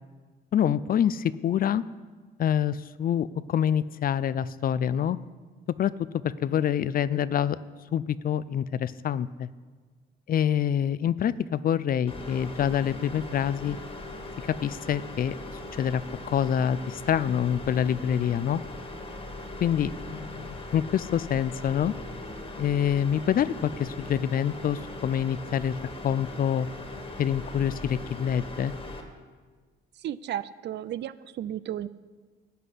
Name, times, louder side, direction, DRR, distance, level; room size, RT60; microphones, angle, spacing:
voice 1, 0.5-1.8 2.4-5.2 5.8-5.9 6.2-7.6 7.9-9.5 10.3-13.8 14.5-15.4 15.8-16.0 16.3-18.6 19.6-21.9 22.6-25.7 26.0-26.7 27.2-28.7, left 9 dB, 45° left, 17 dB, 0.4 m, -26 dB
sound 1, 12.1-29.0, left 2 dB, 30° left, 1.7 m, -40 dB
voice 2, 30.0-31.9, right 11 dB, 60° right, 17 dB, 0.4 m, -34 dB
11.0 x 5.9 x 8.1 m, 1.4 s
cardioid pair, 90°, 20 cm